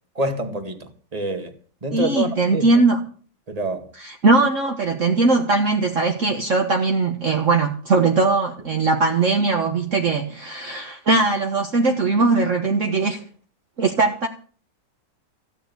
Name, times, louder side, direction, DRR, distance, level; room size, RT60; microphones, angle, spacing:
voice 1, 0.2-1.5 1.8-2.8 3.5-3.9, right 1 dB, 20° right, 2.1 m, -27 dB
voice 2, 1.9-3.0 4.0-13.2 13.8-14.3, right 3 dB, 50° right, 1.6 m, -20 dB
15.5 x 6.8 x 9.5 m
omnidirectional pair, 1.8 m